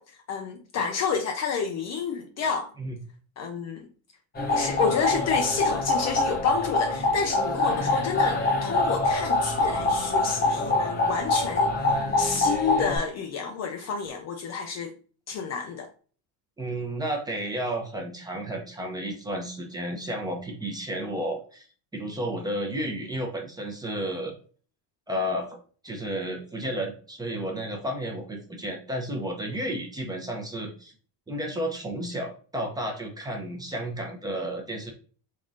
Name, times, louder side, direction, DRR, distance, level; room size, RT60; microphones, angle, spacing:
voice 1, 0.0-2.7 3.4-3.9 4.5-14.9 15.3-15.9, left 6 dB, 40° left, 0.4 m, -30 dB
sound 1, 4.4-13.0, left 2 dB, 20° left, 0.9 m, -25 dB
voice 2, 16.6-21.7 21.9-24.3 25.1-25.6 25.8-30.9 31.3-34.9, right 1 dB, 10° right, 0.7 m, -32 dB
3.7 x 3.6 x 2.6 m
cardioid pair, 145°, 44 cm